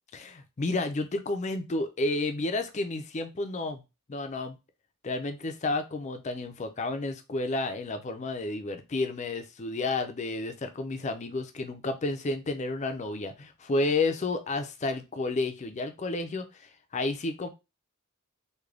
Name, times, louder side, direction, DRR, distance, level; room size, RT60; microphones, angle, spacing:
voice 1, 0.1-3.8 4.1-4.6 5.0-17.5, left 2 dB, 35° left, 0.4 m, -31 dB
3.3 x 2.2 x 3.6 m
head